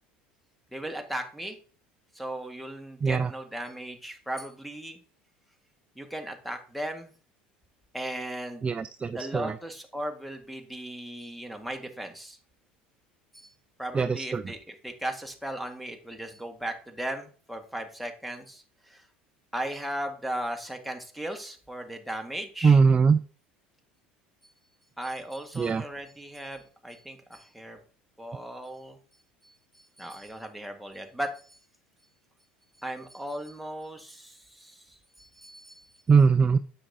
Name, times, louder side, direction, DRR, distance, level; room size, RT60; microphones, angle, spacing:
voice 1, 0.7-1.6 2.1-5.0 6.0-7.1 7.9-8.7 9.1-12.4 13.3-13.5 13.8-19.1 19.5-22.8 25.0-27.8 28.2-29.0 29.4-31.6 32.8-35.9, right 1 dB, ahead, 3 dB, 1.6 m, -37 dB
voice 2, 8.6-9.5 13.9-14.4 22.6-23.2 25.6-25.8 36.1-36.6, right 5 dB, 20° right, 12 dB, 0.4 m, -21 dB
9.6 x 7.7 x 2.7 m, 0.40 s
hypercardioid pair, 75°, 6 cm